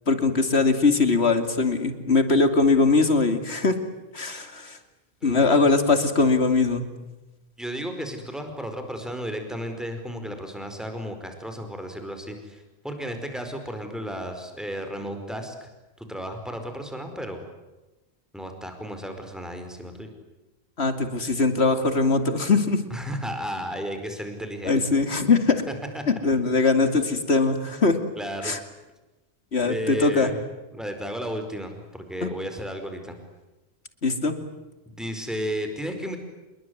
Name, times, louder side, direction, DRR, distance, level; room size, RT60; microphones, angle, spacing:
voice 1, 0.1-3.7 4.1-4.8 5.2-6.8 20.8-22.8 24.6-25.6 26.1-28.0 28.4-28.6 29.5-30.3 34.0-34.3, left 4 dB, 85° left, 8 dB, 2.9 m, -21 dB
voice 2, 7.6-15.7 16.0-17.4 18.3-20.1 22.9-24.8 25.9-26.0 28.2-28.5 29.6-30.4 30.7-33.2 34.9-36.2, equal, ahead, 6 dB, 4.9 m, -33 dB
28.0 x 22.0 x 9.6 m, 1.1 s
omnidirectional pair, 1.1 m